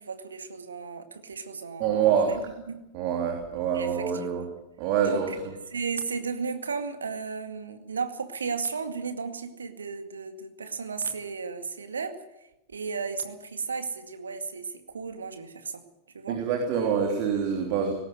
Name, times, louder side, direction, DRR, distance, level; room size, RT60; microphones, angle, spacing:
voice 1, 0.0-2.8 3.7-4.5 5.0-5.4 5.7-12.2 12.7-15.8 16.1-16.4, right 5 dB, 70° right, 8 dB, 2.1 m, -34 dB
voice 2, 1.8-2.3 2.9-4.4 4.8-5.5 16.3-17.9, right 7 dB, 45° right, 3 dB, 3.3 m, -26 dB
19.5 x 17.5 x 8.0 m, 0.91 s
figure-of-eight pair, 90°, 0 cm